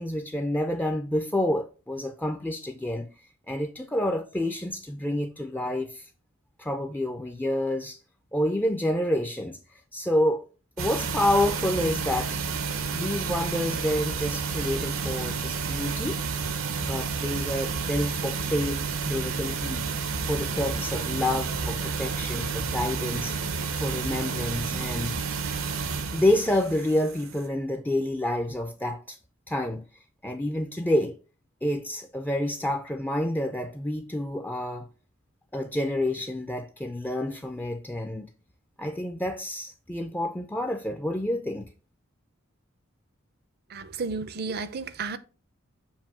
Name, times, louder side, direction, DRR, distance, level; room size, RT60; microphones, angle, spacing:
voice 1, 0.0-3.1 3.5-6.1 6.6-8.0 8.3-10.4 10.8-12.4 12.9-16.2 16.8-19.9 20.3-23.4 23.8-25.2 26.1-29.2 29.5-29.8 30.2-31.2 31.6-34.9 35.5-38.3 38.8-41.7, left 1 dB, 10° left, 0.4 m, -28 dB
sound 1, 10.8-27.5, right 5 dB, 80° right, 0.8 m, -30 dB
voice 2, 43.7-45.2, right 4 dB, 50° right, 0.5 m, -32 dB
7.2 x 2.7 x 5.7 m
head